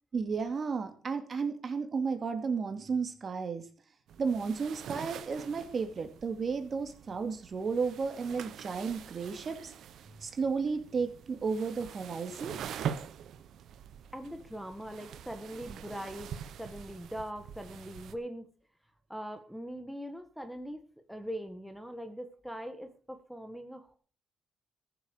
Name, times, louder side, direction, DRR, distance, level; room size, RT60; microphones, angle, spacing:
voice 1, 0.1-3.6 4.2-9.7 10.2-12.6, right 5 dB, 45° right, 7 dB, 2.5 m, -33 dB
sound 1, 4.1-18.1, right 8 dB, 75° right, 1.0 m, -44 dB
voice 2, 14.1-16.3 16.6-18.5 19.1-20.8 21.1-24.0, equal, ahead, 6 dB, 1.6 m, -41 dB
14.5 x 7.3 x 6.6 m, 0.43 s
cardioid pair, 90°, 0 cm